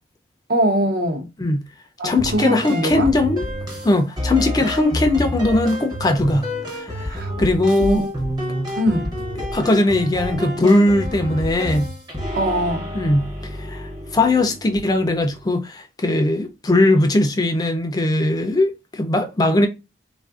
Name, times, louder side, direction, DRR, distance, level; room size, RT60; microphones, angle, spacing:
voice 1, 0.5-1.3 2.0-3.1 7.1-7.3 7.8-8.2 8.8-9.2 12.3-12.9, right 1 dB, 55° right, 0.7 m, -22 dB
voice 2, 2.0-3.5 3.8-8.0 9.4-11.8 12.9-19.7, left 2 dB, 20° left, 0.4 m, -19 dB
sound 1, 2.0-15.4, equal, 25° right, 0.8 m, -29 dB
3.5 x 2.4 x 2.3 m
head